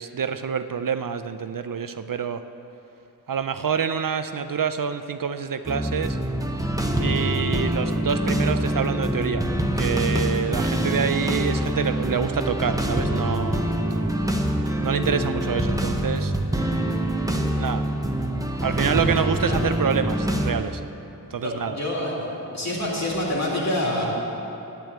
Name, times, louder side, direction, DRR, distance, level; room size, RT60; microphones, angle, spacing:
voice 1, 0.0-2.4 3.3-6.2 7.0-9.5 9.7-13.7 14.8-16.3 17.6-17.9 18.6-20.8 21.3-21.8, right 7 dB, 60° right, 10 dB, 0.5 m, -27 dB
sound 1, 5.7-20.5, right 1 dB, 10° right, 0.9 m, -25 dB
voice 2, 21.4-22.3 22.5-24.1, left 1 dB, 45° left, -4 dB, 2.8 m, -27 dB
9.3 x 8.6 x 8.3 m, 2.9 s
wide cardioid pair, 70°, 37 cm